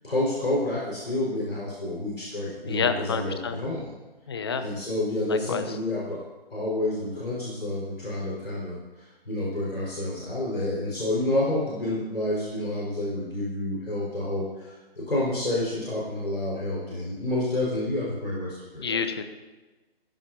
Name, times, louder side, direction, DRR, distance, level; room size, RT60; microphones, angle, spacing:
voice 1, 0.0-3.9 4.6-6.2 6.5-19.0, left 1 dB, 70° left, -5 dB, 5.2 m, -29 dB
voice 2, 2.7-3.6 4.3-4.7 5.3-5.6 18.8-19.2, left 6 dB, 25° left, 8 dB, 0.7 m, -28 dB
18.0 x 15.5 x 2.9 m, 1.2 s
figure-of-eight pair, 145°, 31 cm